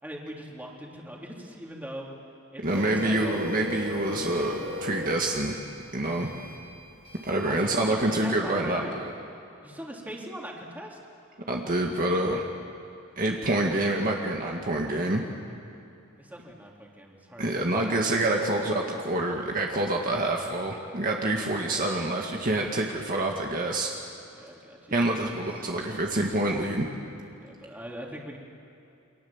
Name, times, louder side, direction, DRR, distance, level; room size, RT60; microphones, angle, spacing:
voice 1, 0.0-2.2 2.5-3.4 4.1-4.6 7.4-9.0 9.6-11.0 16.2-18.4 24.3-25.7 27.4-28.4, equal, 10° right, -1 dB, 3.2 m, -41 dB
voice 2, 2.6-4.5 4.8-5.5 5.9-6.3 7.2-9.1 11.5-12.4 13.2-15.2 17.4-23.9 24.9-26.9, right 1 dB, 40° right, 0 dB, 1.8 m, -27 dB
Printer, 2.6-7.7, left 2 dB, 65° right, 4.7 m, -37 dB
29.0 x 24.5 x 7.3 m, 2.7 s
head